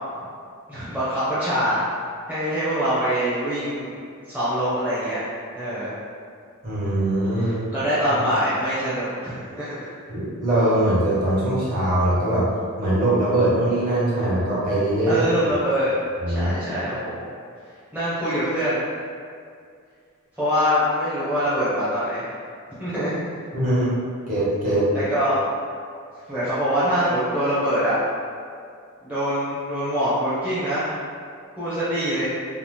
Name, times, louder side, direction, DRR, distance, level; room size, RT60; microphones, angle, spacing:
voice 1, 0.7-1.8 2.3-4.0 4.3-5.2 5.6-5.9 7.7-9.9 15.1-15.9 16.3-17.3 17.9-18.8 20.4-22.3 22.8-23.1 24.9-25.4 26.3-28.0 29.0-30.9 31.6-32.3, equal, 5° right, -13 dB, 0.5 m, -24 dB
voice 2, 6.6-7.6 10.1-12.5 12.8-15.1 16.2-16.5 23.5-23.9 24.3-24.9, right 1 dB, 40° right, -10 dB, 1.0 m, -21 dB
2.7 x 2.0 x 3.2 m, 2.2 s
head